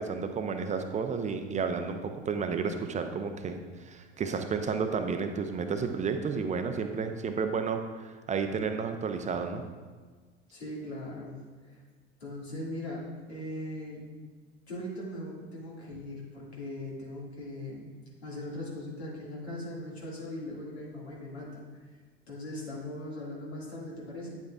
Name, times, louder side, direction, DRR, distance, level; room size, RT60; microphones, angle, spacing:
voice 1, 0.0-9.6, right 5 dB, 20° right, 6 dB, 0.6 m, -32 dB
voice 2, 10.5-11.4 11.6-11.8 12.2-14.1 14.7-17.9 18.2-21.6 22.3-24.4, left 1 dB, 80° left, -4 dB, 2.1 m, -39 dB
9.1 x 8.0 x 2.4 m, 1.4 s
figure-of-eight pair, 70°, 32 cm